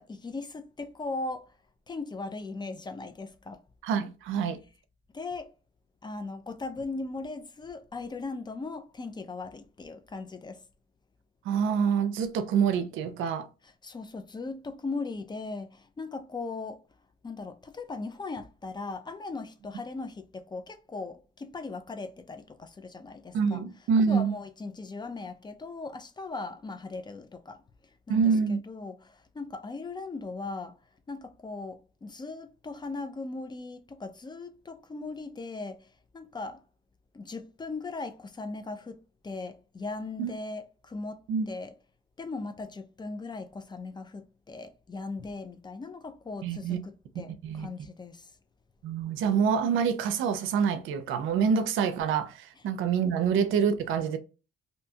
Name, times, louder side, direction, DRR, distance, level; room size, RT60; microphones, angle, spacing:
voice 1, 0.0-1.5 1.9-3.6 5.1-5.5 6.0-10.6 13.8-16.8 17.2-23.6 24.1-27.6 28.1-30.8 31.1-36.6 37.1-41.7 42.2-48.3, left 3 dB, 20° left, 0.4 m, -38 dB
voice 2, 3.8-4.6 11.4-13.5 23.3-24.3 28.1-28.6 40.2-40.4 41.3-41.5 46.4-46.8 47.4-47.7 48.8-54.2, right 6 dB, 85° right, 0.5 m, -26 dB
2.7 x 2.2 x 2.7 m
cardioid pair, 90°, 20 cm